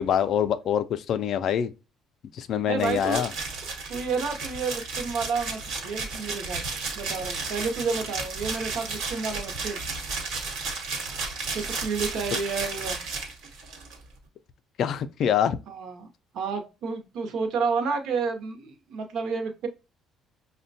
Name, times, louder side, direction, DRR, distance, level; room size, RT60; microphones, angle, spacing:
voice 1, 0.0-1.7 2.3-3.3 14.8-15.6, left 9 dB, 50° left, 0.3 m, -25 dB
voice 2, 2.7-3.2 3.9-6.6 7.0-9.8 11.5-13.0 15.7-16.1 16.3-19.7, right 5 dB, 55° right, 0.7 m, -30 dB
sound 1, 2.8-14.0, right 4 dB, 80° right, 1.1 m, -33 dB
5.8 x 2.1 x 2.6 m
cardioid pair, 170°, 0 cm